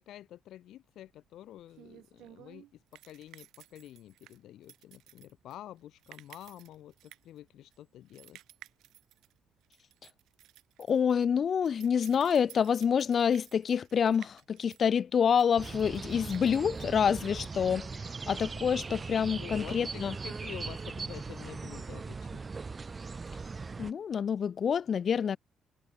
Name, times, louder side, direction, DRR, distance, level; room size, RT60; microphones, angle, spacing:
voice 1, 0.0-2.7 2.9-8.4 19.3-22.4, left 12 dB, 80° left, 1.7 m, -48 dB
sound 1, 1.0-17.7, right 14 dB, 85° right, 1.1 m, -57 dB
voice 2, 10.9-20.1 23.8-25.4, left 7 dB, 50° left, 0.3 m, -27 dB
sound 2, 15.6-23.9, right 4 dB, 30° right, 0.6 m, -39 dB
cardioid pair, 90°, 0 cm